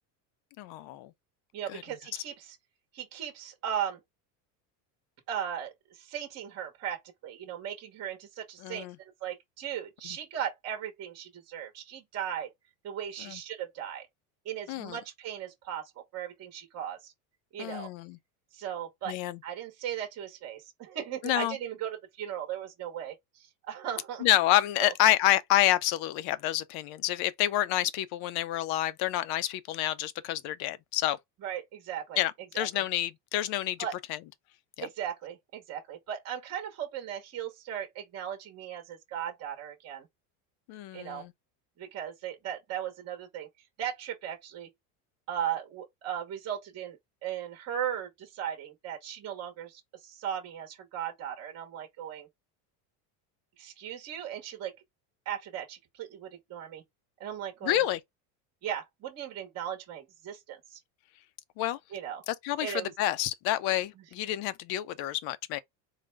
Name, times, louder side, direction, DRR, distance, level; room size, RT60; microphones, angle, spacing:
voice 1, 0.6-1.1 1.7-1.8 8.6-8.9 13.2-13.4 14.7-15.0 17.6-18.2 19.1-19.4 21.2-21.5 24.2-31.2 32.2-33.8 34.8-34.9 40.7-41.3 57.6-58.0 61.6-61.8 62.3-65.6, left 13 dB, 50° left, 0.6 m, -28 dB
voice 2, 1.5-2.6 2.9-4.0 5.3-12.5 12.8-14.1 14.4-17.1 17.5-17.9 18.5-19.2 19.4-24.2 24.8-24.9 31.4-32.2 32.5-32.8 33.8-34.0 34.8-40.1 40.9-41.3 41.8-43.5 43.8-44.7 45.3-52.3 53.6-54.8 55.3-56.8 57.2-57.8 58.6-60.8 61.9-62.2 62.6-62.9 64.0-64.1, right 9 dB, 35° right, 1.0 m, -37 dB
3.9 x 2.1 x 3.2 m
supercardioid pair, 125°, 47 cm